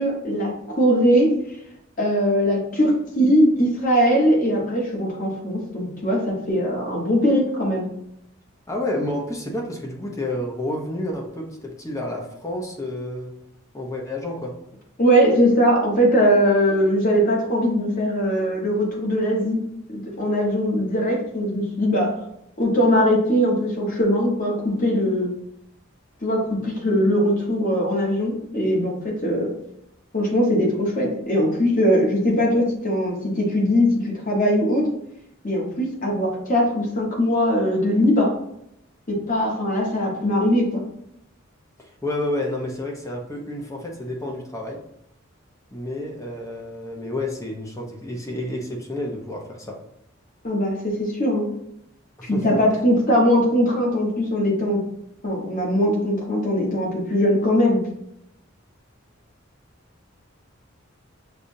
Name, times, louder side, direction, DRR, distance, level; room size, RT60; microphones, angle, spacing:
voice 1, 0.0-1.3 2.0-7.9 15.0-19.6 19.9-22.1 22.6-25.3 26.2-29.5 30.1-34.9 35.4-38.3 39.1-40.8 50.4-51.5 52.2-54.8 55.2-57.8, equal, 45° left, -2 dB, 1.3 m, -20 dB
voice 2, 8.7-13.4 13.7-14.6 41.8-44.8 45.7-49.8 52.2-52.6, left 1 dB, 15° left, 0 dB, 0.8 m, -30 dB
6.7 x 2.5 x 2.7 m, 0.76 s
head